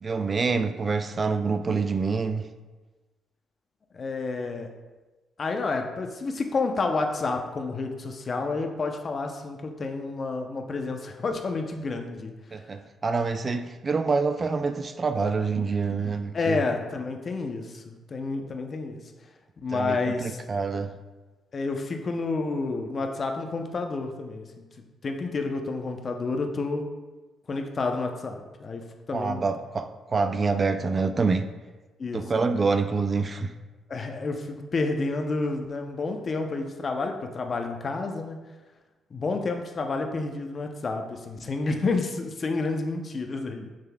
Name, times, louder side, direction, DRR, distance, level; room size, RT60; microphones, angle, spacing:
voice 1, 0.0-2.5 12.5-16.6 19.7-21.0 29.1-31.5 32.1-33.5, right 4 dB, 35° right, 9 dB, 0.4 m, -26 dB
voice 2, 3.9-4.7 5.4-12.6 16.3-19.1 19.6-20.4 21.5-24.7 25.0-26.9 27.5-29.4 32.0-32.5 33.9-38.4 39.1-43.7, left 3 dB, 40° left, 4 dB, 0.7 m, -30 dB
6.7 x 6.6 x 2.3 m, 1.2 s
cardioid pair, 90°, 0 cm